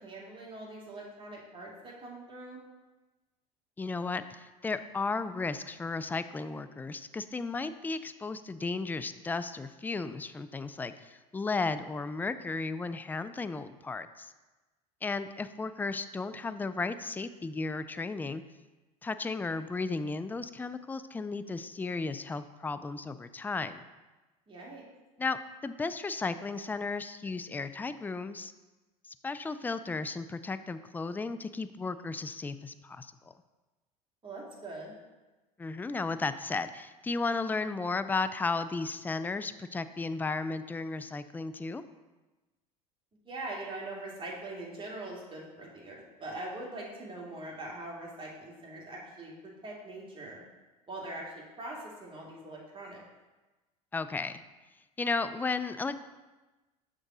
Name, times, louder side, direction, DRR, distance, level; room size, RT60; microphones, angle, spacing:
voice 1, 0.0-2.6 16.3-16.5 24.5-24.8 34.2-34.9 43.2-50.4 50.9-53.0, right 2 dB, 25° right, -3 dB, 2.3 m, -42 dB
voice 2, 3.8-14.3 15.0-18.4 19.0-23.8 25.2-28.5 29.0-33.1 35.6-41.8 53.9-54.4 55.0-56.0, left 3 dB, 10° left, 12 dB, 0.3 m, -34 dB
6.4 x 3.7 x 6.0 m, 1.2 s
hypercardioid pair, 80°, 20 cm